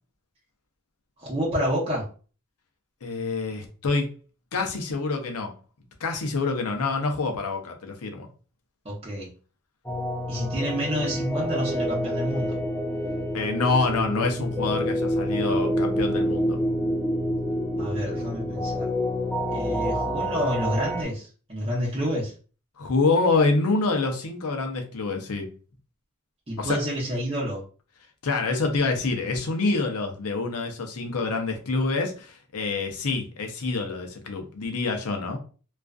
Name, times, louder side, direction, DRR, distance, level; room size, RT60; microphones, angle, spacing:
voice 1, 1.2-2.1 8.8-9.3 10.3-12.6 17.8-18.9 19.5-22.3 26.5-27.6, equal, 25° right, -6 dB, 0.8 m, -29 dB
voice 2, 3.0-4.1 4.5-5.5 6.0-8.3 13.3-16.6 22.8-25.5 26.6-26.8 28.2-35.4, left 3 dB, 75° left, 4 dB, 0.6 m, -26 dB
sound 1, 9.9-21.0, equal, 5° left, 0.4 m, -27 dB
2.4 x 2.4 x 2.3 m, 0.37 s
head